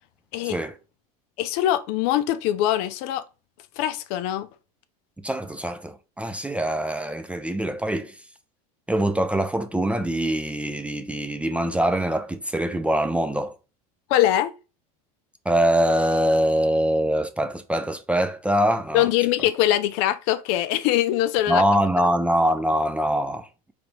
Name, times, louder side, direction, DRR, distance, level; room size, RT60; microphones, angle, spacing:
voice 1, 1.4-3.2 3.8-4.5 14.1-14.5 18.9-21.6, left 13 dB, 60° left, 0.5 m, -22 dB
voice 2, 5.2-8.2 8.9-13.5 15.5-19.1 21.5-23.5, right 1 dB, 5° right, 0.4 m, -23 dB
3.9 x 3.3 x 3.2 m
supercardioid pair, 110°, 19 cm